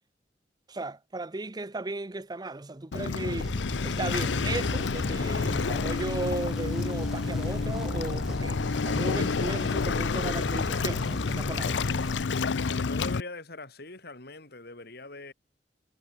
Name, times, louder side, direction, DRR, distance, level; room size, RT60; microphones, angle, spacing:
voice 1, 0.7-3.5 3.8-11.8, right 2 dB, 25° right, 0.7 m, -36 dB
Waves surf, 2.9-13.2, left 4 dB, 85° left, 0.6 m, -29 dB
sound 1, 3.4-12.2, equal, ahead, 1.5 m, -37 dB
sound 2, 4.2-13.1, right 1 dB, 85° right, 3.6 m, -48 dB
voice 2, 12.7-15.3, left 2 dB, 60° left, 3.8 m, -42 dB
head